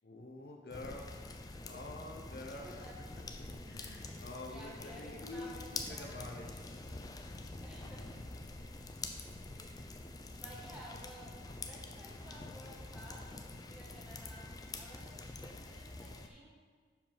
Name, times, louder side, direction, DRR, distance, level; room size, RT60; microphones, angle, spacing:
voice 1, 0.0-1.2 1.6-2.9 3.4-6.5, left 2 dB, 60° left, 1 dB, 0.8 m, -47 dB
sound 1, 0.7-16.3, left 3 dB, 20° left, 0.4 m, -46 dB
voice 2, 2.5-3.2 4.0-6.7 7.6-8.6 9.5-9.9 10.3-11.4 11.6-14.5 14.7-16.5, equal, 5° right, -5 dB, 1.4 m, -55 dB
7.2 x 4.7 x 5.7 m, 1.5 s
head